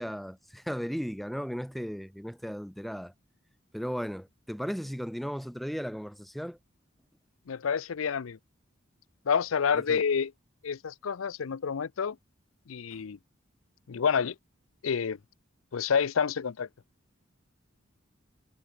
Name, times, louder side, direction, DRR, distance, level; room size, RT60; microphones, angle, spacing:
voice 1, 0.0-3.1 3.7-6.6 9.7-10.0 12.9-13.0, equal, ahead, 0.8 m, -36 dB
voice 2, 7.5-8.4 9.3-10.3 10.6-12.2 12.7-13.2 13.9-14.3 14.8-15.2 15.7-16.7, left 6 dB, 90° left, 0.5 m, -28 dB
head